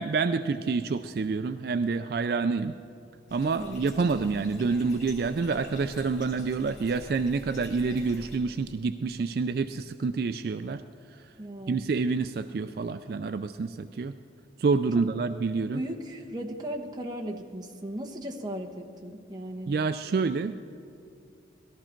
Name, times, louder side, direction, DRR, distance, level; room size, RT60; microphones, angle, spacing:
voice 1, 0.0-2.7 3.3-10.8 11.7-14.2 14.6-15.8 19.7-20.7, right 4 dB, 55° right, 10 dB, 0.3 m, -28 dB
Bathtub (filling or washing), 3.3-8.4, left 1 dB, 40° left, 3.1 m, -47 dB
voice 2, 11.4-11.9 15.7-19.7, right 1 dB, 20° right, 0 dB, 1.1 m, -37 dB
18.0 x 13.5 x 4.5 m, 2.7 s
head